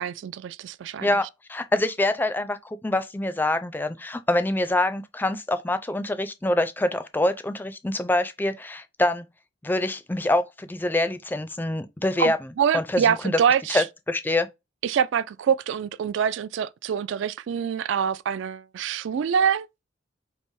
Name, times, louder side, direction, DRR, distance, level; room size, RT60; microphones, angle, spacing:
voice 1, 0.0-1.1 12.2-13.8 14.8-19.7, right 7 dB, 70° right, 0.3 m, -25 dB
voice 2, 1.0-9.2 9.6-12.4 12.7-13.4 13.7-14.5, left 1 dB, 10° left, 0.4 m, -25 dB
5.5 x 2.0 x 4.6 m
head